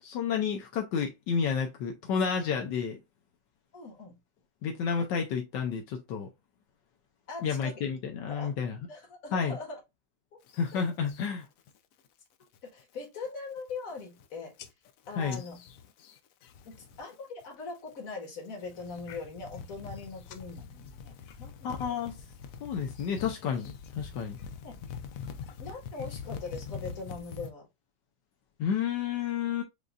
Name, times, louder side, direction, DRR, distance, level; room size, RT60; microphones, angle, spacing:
voice 1, 0.0-3.0 4.6-6.3 7.4-8.8 9.3-9.6 10.6-11.5 15.2-15.4 21.6-22.2 22.6-24.4 28.6-29.6, left 6 dB, 80° left, 1.4 m, -30 dB
voice 2, 3.7-4.2 5.0-5.1 7.3-7.8 8.3-8.5 8.9-9.8 10.3-10.4 12.6-14.5 15.1-15.6 16.7-21.9 24.6-24.8 25.6-27.7, left 3 dB, 50° left, 1.9 m, -41 dB
sound 1, 10.5-11.3 11.7-12.1 12.4-12.8 13.3-13.4 13.6-14.2 14.6-17.1 17.4-17.9 18.4-27.5, left 7 dB, 65° left, 0.9 m, -44 dB
6.8 x 2.6 x 2.3 m
omnidirectional pair, 1.9 m